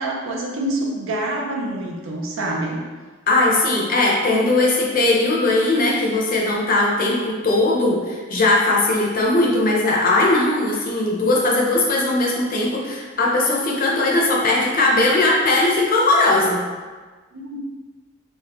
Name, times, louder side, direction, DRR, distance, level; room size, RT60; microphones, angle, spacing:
voice 1, 0.0-2.8 17.3-17.6, right 1 dB, 80° right, 0 dB, 0.5 m, -26 dB
voice 2, 3.3-16.6, left 2 dB, 45° left, -2 dB, 0.5 m, -19 dB
3.3 x 2.1 x 2.9 m, 1.4 s
head